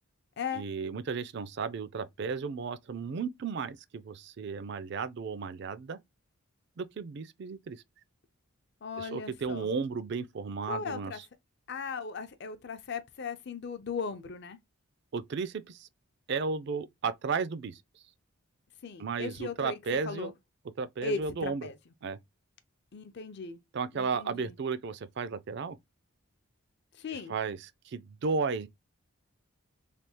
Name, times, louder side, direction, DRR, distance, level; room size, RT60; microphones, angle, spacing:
voice 1, 0.5-6.0 6.8-7.8 9.0-11.2 15.1-15.9 16.3-17.8 19.0-20.3 20.8-21.7 22.0-22.2 23.7-25.8 27.3-28.7, right 5 dB, 55° right, 0.4 m, -34 dB
voice 2, 8.8-9.7 10.7-11.2 11.7-14.6 18.8-19.8 20.1-20.3 21.0-21.8 22.9-23.6 24.0-24.5 27.0-27.4, left 5 dB, 50° left, 0.5 m, -37 dB
3.4 x 2.3 x 2.9 m
head